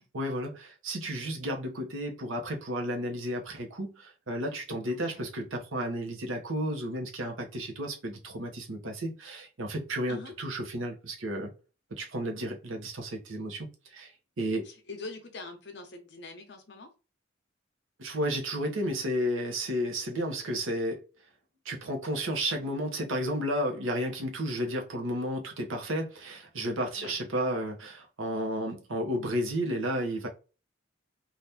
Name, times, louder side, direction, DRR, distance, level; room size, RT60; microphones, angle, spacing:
voice 1, 0.0-11.5 11.9-13.7 13.9-14.1 14.4-14.7 18.0-21.0 21.6-30.3, equal, 80° right, 0.8 m, -32 dB
voice 2, 4.8-5.3 10.0-10.3 14.6-16.9 26.9-27.2, left 3 dB, 55° left, 0.7 m, -44 dB
2.8 x 2.4 x 3.4 m
head